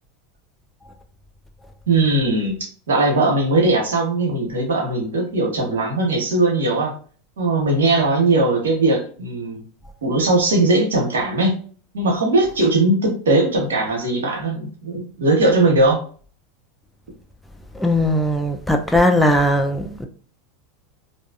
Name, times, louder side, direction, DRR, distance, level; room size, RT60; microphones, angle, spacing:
voice 1, 1.9-2.6 2.9-6.9 7.4-9.6 10.0-11.5 11.9-16.0, right 2 dB, 90° right, 0.9 m, -19 dB
voice 2, 17.7-20.1, left 1 dB, 5° left, 0.4 m, -18 dB
2.5 x 2.3 x 2.4 m
hypercardioid pair, 105°, 0 cm